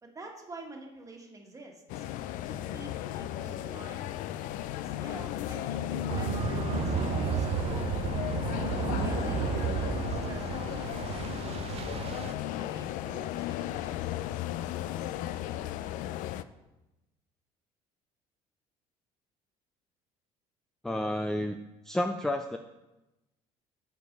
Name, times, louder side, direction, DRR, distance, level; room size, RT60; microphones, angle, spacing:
voice 1, 0.0-2.0 2.5-4.1 4.8-7.9 9.0-12.2 12.6-14.0, right 2 dB, 25° right, 1 dB, 1.5 m, -48 dB
sound 1, 1.9-16.4, left 12 dB, 70° left, 0.4 m, -35 dB
sound 2, 6.1-12.3, right 8 dB, 45° right, 0.6 m, -32 dB
voice 2, 20.8-21.6 21.9-22.6, left 1 dB, 5° left, 6 dB, 0.4 m, -30 dB
8.1 x 4.5 x 5.1 m, 1.0 s
supercardioid pair, 95°, 14 cm